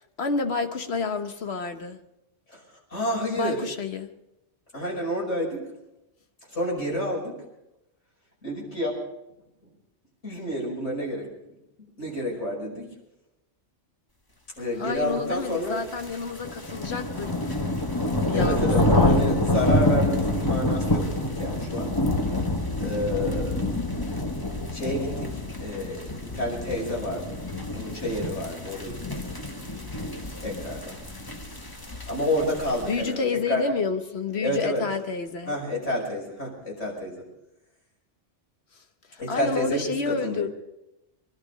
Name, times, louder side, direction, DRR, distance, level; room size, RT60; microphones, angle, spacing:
voice 1, 0.2-2.0 3.4-4.2 14.8-17.6 18.3-19.3 30.2-30.4 32.8-35.6 39.1-40.5, left 4 dB, 60° left, 1.4 m, -30 dB
voice 2, 2.9-3.6 4.7-5.6 6.5-7.4 8.4-9.0 10.2-11.3 12.0-12.9 14.6-15.8 18.3-21.9 22.8-23.6 24.7-25.3 25.6-27.4 27.7-29.0 30.4-30.9 32.1-33.2 33.5-33.6 34.4-34.8 35.5-37.2 39.2-40.5, equal, 85° left, 5.9 m, -29 dB
sound 1, 15.5-33.1, left 1 dB, 20° left, 1.4 m, -27 dB
24.0 x 11.5 x 5.2 m
omnidirectional pair, 1.2 m